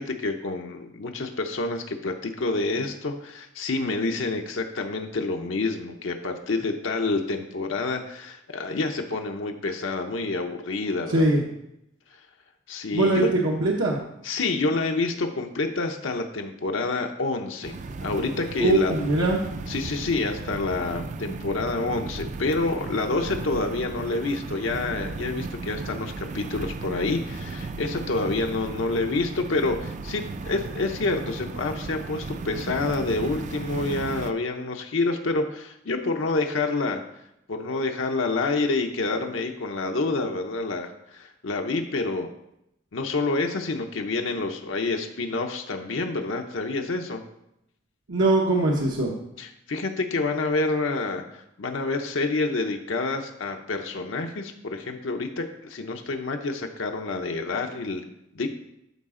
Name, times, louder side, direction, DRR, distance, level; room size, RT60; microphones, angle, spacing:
voice 1, 0.0-11.3 12.7-13.3 14.2-17.7 18.0-19.1 19.7-37.0 37.5-42.3 42.9-47.2 49.4-58.0 58.3-58.5, left 3 dB, 75° left, 4 dB, 0.7 m, -28 dB
voice 2, 11.1-11.4 12.9-14.0 18.6-19.4 48.1-49.1, right 2 dB, 80° right, -2 dB, 1.0 m, -21 dB
sound 1, 17.6-34.3, right 3 dB, 40° right, 0.4 m, -35 dB
12.0 x 4.8 x 3.7 m, 0.82 s
head